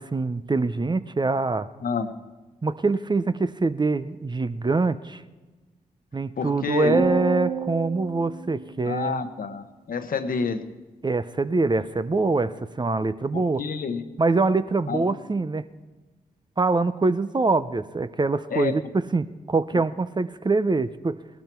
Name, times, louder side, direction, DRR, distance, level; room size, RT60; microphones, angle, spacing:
voice 1, 0.0-1.7 2.6-5.2 6.1-9.2 11.0-13.6 14.2-15.6 16.6-21.2, right 3 dB, 30° right, 13 dB, 0.7 m, -24 dB
voice 2, 1.8-2.1 6.4-7.0 8.8-10.7 13.3-14.0 14.9-15.2 18.5-18.7, left 5 dB, 60° left, 9 dB, 1.0 m, -28 dB
sound 1, 6.9-9.3, right 5 dB, 75° right, 6.0 m, -31 dB
18.0 x 12.5 x 4.6 m, 1.2 s
supercardioid pair, 45°, 16 cm